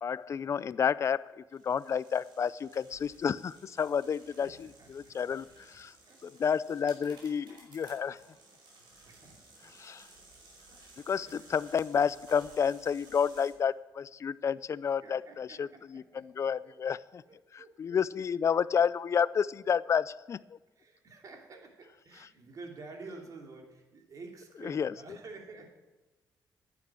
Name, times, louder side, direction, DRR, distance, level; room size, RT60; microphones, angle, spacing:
voice 1, 0.0-4.7 4.9-6.0 6.2-8.2 9.7-10.1 11.1-17.2 17.5-20.4 24.6-24.9, left 7 dB, 40° left, 19 dB, 0.4 m, -30 dB
sound 1, 1.5-13.5, right 2 dB, 80° right, 4.9 m, -57 dB
voice 2, 4.4-5.5 6.0-6.2 9.0-9.7 10.3-10.4 10.7-10.8 11.3-11.5 15.0-16.7 17.3-18.0 20.8-25.8, right 3 dB, 50° right, 2 dB, 2.8 m, -50 dB
11.0 x 9.6 x 8.7 m, 1.2 s
cardioid pair, 120°, 8 cm